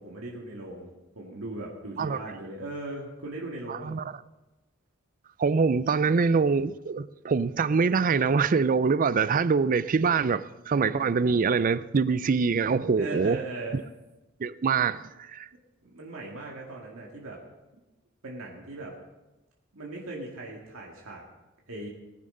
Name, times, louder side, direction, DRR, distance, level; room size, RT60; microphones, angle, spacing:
voice 1, 0.0-4.0 13.0-13.8 15.8-17.4 18.2-18.9 19.7-21.2 21.7-21.9, right 2 dB, 85° right, 2.0 m, -38 dB
voice 2, 3.7-4.1 5.4-13.4 13.7-13.8 14.4-15.5, right 5 dB, 40° right, 0.4 m, -24 dB
19.5 x 10.0 x 3.9 m
head